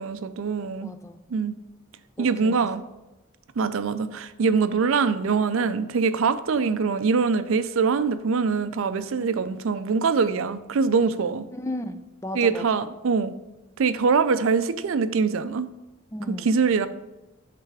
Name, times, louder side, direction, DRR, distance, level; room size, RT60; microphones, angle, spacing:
voice 1, 0.0-0.9 1.3-1.6 2.2-2.8 3.6-11.5 12.3-13.3 13.8-15.7 16.4-16.9, right 5 dB, 65° right, 12 dB, 0.4 m, -23 dB
voice 2, 0.8-1.2 2.2-2.6 11.5-12.8 16.1-16.5, left 1 dB, 15° left, 9 dB, 0.3 m, -35 dB
7.9 x 3.3 x 4.8 m, 1.0 s
head